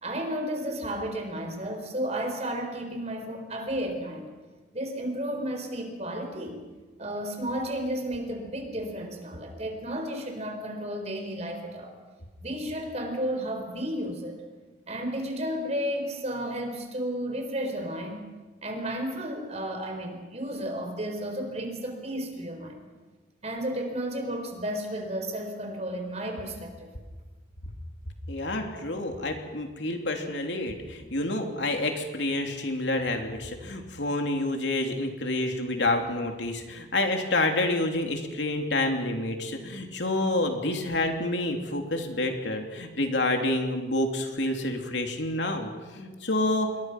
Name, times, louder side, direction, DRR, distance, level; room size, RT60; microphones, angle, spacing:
voice 1, 0.0-4.3 4.7-6.6 7.0-12.0 12.4-14.4 14.9-18.2 18.6-22.8 23.4-26.9, equal, 35° right, 4 dB, 4.3 m, -33 dB
voice 2, 28.3-46.7, left 2 dB, 75° left, 4 dB, 3.1 m, -28 dB
27.5 x 22.0 x 6.0 m, 1.3 s
head